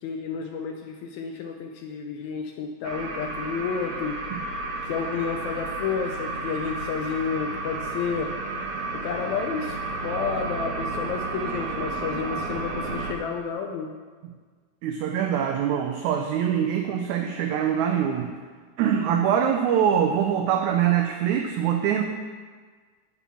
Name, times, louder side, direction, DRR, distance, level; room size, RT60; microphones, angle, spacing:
voice 1, 0.0-4.2 4.9-8.3 8.9-9.8 10.0-13.9, left 6 dB, 75° left, 3 dB, 1.8 m, -31 dB
sound 1, 2.8-13.1, right 3 dB, 55° right, 1.7 m, -32 dB
voice 2, 14.8-18.3 18.8-22.0, right 9 dB, 75° right, 3 dB, 1.9 m, -23 dB
11.0 x 4.4 x 7.0 m, 1.5 s
omnidirectional pair, 3.7 m